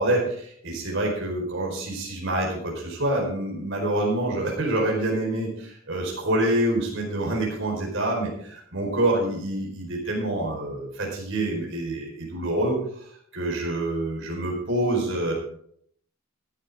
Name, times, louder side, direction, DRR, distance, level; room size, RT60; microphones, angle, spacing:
voice 1, 0.0-15.3, right 1 dB, 55° right, -1 dB, 4.7 m, -26 dB
15.5 x 11.5 x 3.7 m, 0.63 s
head